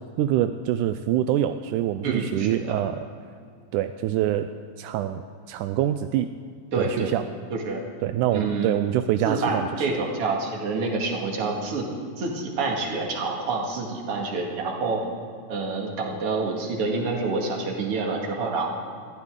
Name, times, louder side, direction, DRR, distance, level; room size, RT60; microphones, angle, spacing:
voice 1, 0.2-3.1 3.7-4.5 4.8-6.3 6.8-7.2 8.0-9.7, right 12 dB, 85° right, 9 dB, 1.8 m, -25 dB
voice 2, 2.0-2.8 6.7-7.1 7.5-7.8 8.3-8.7 9.2-11.9 12.2-15.1 15.5-18.7, right 3 dB, 45° right, 0 dB, 2.6 m, -27 dB
21.5 x 15.0 x 3.7 m, 2.2 s
omnidirectional pair, 4.0 m